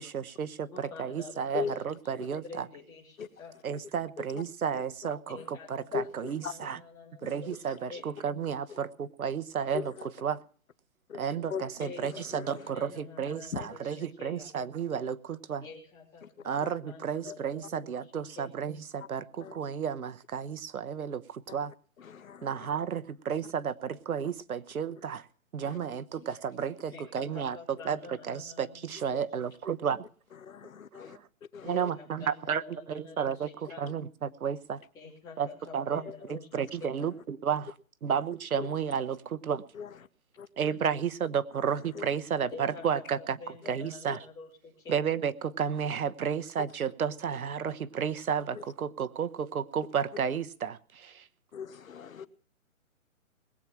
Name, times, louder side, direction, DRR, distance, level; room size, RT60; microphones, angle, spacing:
voice 1, 0.0-2.6 3.6-6.8 7.2-9.9 10.2-10.4 11.2-15.6 16.4-21.7 22.4-25.3 25.5-27.6 27.8-30.0 30.9-31.2 31.6-33.5 33.8-34.8 35.4-35.5 35.7-36.0 36.3-37.7 38.0-39.6 40.6-43.4 43.7-44.2 44.9-51.3, right 7 dB, 85° right, 1.1 m, -32 dB
voice 2, 0.7-2.2 2.4-3.5 5.3-7.6 7.9-8.1 11.8-14.5 15.6-18.5 26.9-29.2 29.6-29.7 31.6-33.9 34.9-37.1 42.5-45.0, left 4 dB, 10° left, 2.9 m, -48 dB
voice 3, 5.9-6.8 7.2-7.3 9.7-10.1 11.1-11.2 11.5-11.7 12.0-12.7 13.5-13.7 16.6-16.7 19.4-19.6 21.5-21.6 22.0-22.7 25.6-25.8 26.2-26.3 30.4-31.2 31.5-31.9 33.8-33.9 36.0-36.1 38.6-38.7 39.7-39.9 40.4-40.5 41.9-42.1 44.1-44.2 48.5-48.6 51.5-52.3, left 6 dB, 75° left, 1.1 m, -39 dB
20.5 x 8.8 x 6.0 m
hypercardioid pair, 175°, 42 cm